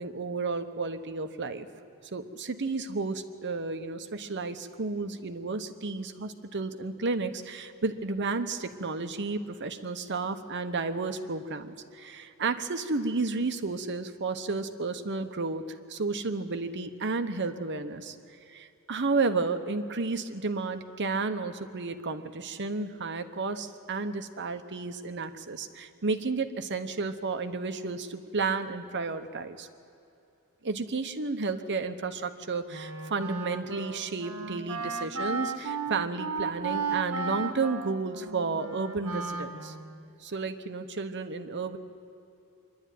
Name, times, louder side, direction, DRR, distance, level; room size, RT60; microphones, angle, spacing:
voice 1, 0.0-1.7 2.1-15.6 15.9-18.2 18.5-29.7 30.6-39.7 40.2-41.8, right 3 dB, 50° right, 9 dB, 1.0 m, -32 dB
Wind instrument woodwind instrument, 32.7-40.0, right 4 dB, 75° right, 1.4 m, -35 dB
25.5 x 11.5 x 9.2 m, 2.7 s
head